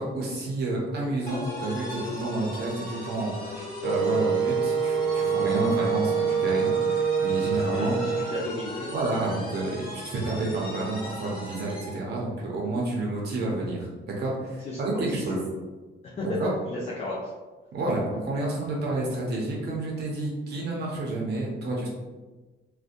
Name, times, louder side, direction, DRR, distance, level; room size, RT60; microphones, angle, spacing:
voice 1, 0.0-7.9 8.9-15.4 16.2-16.5 17.7-21.9, right 2 dB, 55° right, -3 dB, 0.6 m, -30 dB
sound 1, 1.3-12.0, left 1 dB, 50° left, 0.8 m, -38 dB
Wind instrument woodwind instrument, 3.8-8.4, right 6 dB, 15° right, 0.7 m, -25 dB
voice 2, 7.6-8.9 14.6-15.3 16.0-16.2 16.6-17.3, left 2 dB, 35° left, -4 dB, 0.4 m, -34 dB
2.6 x 2.1 x 2.5 m, 1.3 s
cardioid pair, 130°, 20 cm